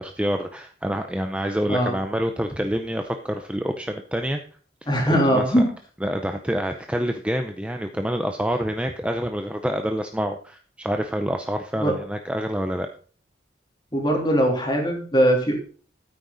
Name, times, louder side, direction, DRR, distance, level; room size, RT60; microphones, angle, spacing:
voice 1, 0.0-4.4 4.8-5.4 6.0-12.9, equal, 5° right, 5 dB, 0.6 m, -27 dB
voice 2, 4.9-5.6 11.8-11.9 13.9-15.5, equal, 25° left, 1 dB, 3.1 m, -20 dB
13.0 x 9.1 x 4.0 m, 0.43 s
head